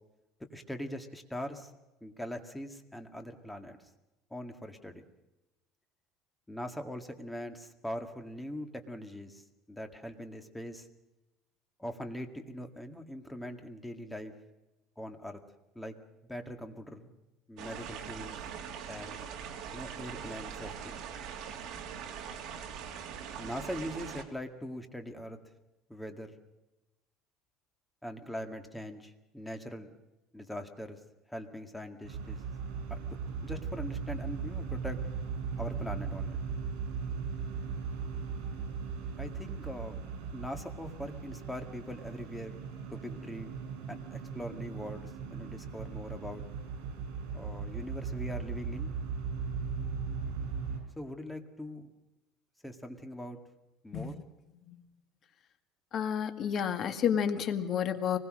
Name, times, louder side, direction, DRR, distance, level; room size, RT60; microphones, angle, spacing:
voice 1, 0.5-1.7 2.0-3.8 4.3-5.0 6.5-9.4 9.7-10.9 11.8-14.3 15.0-15.4 15.8-16.0 16.3-17.1 17.5-18.4 18.9-19.2 19.7-21.0 23.4-25.4 25.9-26.3 28.0-29.9 30.3-31.0 31.3-32.4 32.9-33.0 33.4-35.0 35.6-36.4 39.2-40.0 40.3-42.5 42.9-43.6 43.9-46.4 47.3-48.9 51.0-51.9 52.6-53.4 53.8-54.2, equal, 5° left, 6 dB, 1.9 m, -41 dB
sound 1, 17.6-24.2, right 7 dB, 55° right, 2.5 m, -42 dB
sound 2, 32.0-50.8, right 5 dB, 75° right, 7.9 m, -38 dB
voice 2, 55.9-58.2, left 8 dB, 40° left, 8 dB, 1.9 m, -30 dB
24.5 x 20.5 x 6.4 m, 1.0 s
cardioid pair, 155°, 0 cm